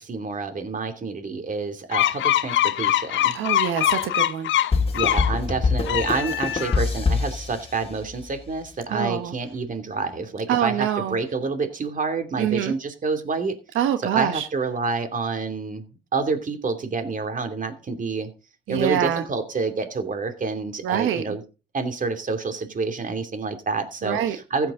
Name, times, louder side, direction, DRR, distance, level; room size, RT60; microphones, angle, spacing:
voice 1, 0.0-3.4 4.9-13.6 14.0-15.8 16.1-18.3 18.7-21.4 21.7-24.7, right 4 dB, 40° right, 7 dB, 2.8 m, -28 dB
sound 1, 1.9-5.3 5.8-7.0, left 12 dB, 75° left, 0.8 m, -23 dB
voice 2, 3.3-4.5 8.9-9.3 10.5-11.2 12.4-12.7 13.7-14.5 18.7-19.2 20.8-21.3 24.0-24.4, right 10 dB, 90° right, 8 dB, 1.2 m, -25 dB
sound 2, 4.7-8.3, left 4 dB, 30° left, 2.1 m, -25 dB
15.0 x 8.7 x 3.8 m, 0.32 s
cardioid pair, 90°, 20 cm